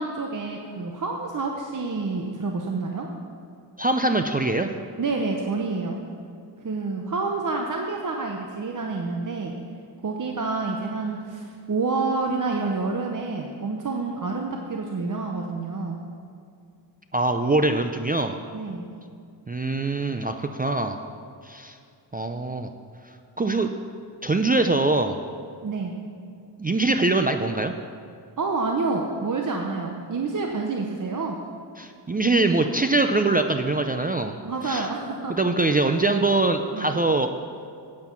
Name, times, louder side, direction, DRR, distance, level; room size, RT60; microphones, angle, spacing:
voice 1, 0.0-3.1 5.0-6.0 6.6-9.5 10.0-16.0 18.5-18.9 25.6-25.9 28.4-31.4 34.4-35.4 36.7-36.9, right 3 dB, 45° right, 1 dB, 0.8 m, -28 dB
voice 2, 3.8-4.7 17.1-18.4 19.5-21.0 21.4-21.8 22.1-22.7 23.4-23.7 24.2-25.2 26.6-27.8 31.8-34.4 34.6-34.9 35.3-37.3, right 2 dB, 20° right, 6 dB, 0.4 m, -23 dB
9.4 x 8.8 x 6.0 m, 2.4 s
wide cardioid pair, 110°, 45 cm